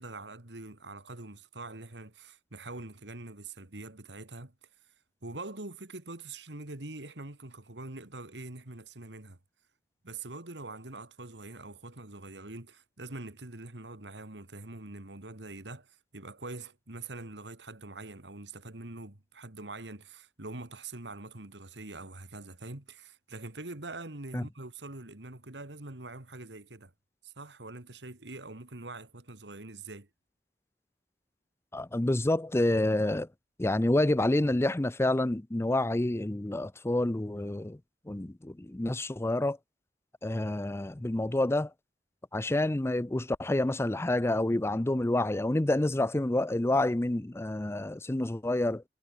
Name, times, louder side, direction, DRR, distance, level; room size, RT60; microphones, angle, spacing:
voice 1, 0.0-4.5 5.2-9.4 10.0-26.9 27.2-30.1, right 2 dB, 85° right, 2.5 m, -44 dB
voice 2, 31.7-33.3 33.6-37.8 38.1-39.6 40.2-41.7 42.3-48.8, left 1 dB, 15° left, 0.5 m, -28 dB
head